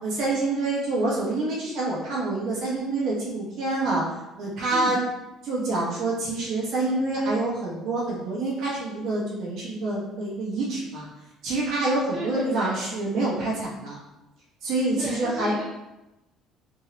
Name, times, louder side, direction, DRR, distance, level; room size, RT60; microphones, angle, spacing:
voice 1, 0.0-4.0 4.4-5.0 5.4-11.0 11.4-14.0 14.6-15.5, right 2 dB, 55° right, -5 dB, 1.3 m, -27 dB
voice 2, 4.7-5.0 12.1-12.8 15.0-15.6, equal, 30° right, -6 dB, 0.7 m, -33 dB
3.7 x 2.8 x 3.0 m, 0.96 s
cardioid pair, 165°, 0 cm